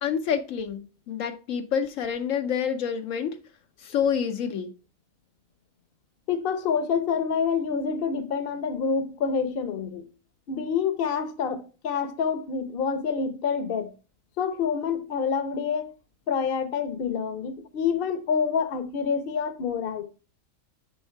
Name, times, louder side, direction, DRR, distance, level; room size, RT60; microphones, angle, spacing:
voice 1, 0.0-3.4 3.8-4.7, left 7 dB, 75° left, 1.0 m, -28 dB
voice 2, 6.3-10.1 10.5-13.9 14.4-15.9 16.3-20.0, left 6 dB, 50° left, 0.9 m, -27 dB
6.4 x 5.4 x 4.5 m
omnidirectional pair, 1.4 m